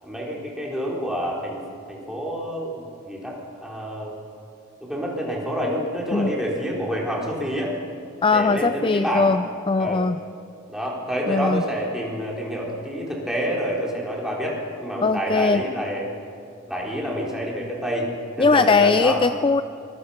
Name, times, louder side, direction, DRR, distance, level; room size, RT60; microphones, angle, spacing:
voice 1, 0.0-1.6 1.9-4.2 4.8-7.7 8.3-9.3 9.8-10.0 10.7-16.1 16.7-18.1 18.4-19.2, equal, 5° right, -3 dB, 4.3 m, -28 dB
voice 2, 8.2-10.2 11.3-11.6 15.0-15.6 18.4-19.6, left 4 dB, 25° left, 11 dB, 0.4 m, -20 dB
24.0 x 21.0 x 5.8 m, 2.4 s
head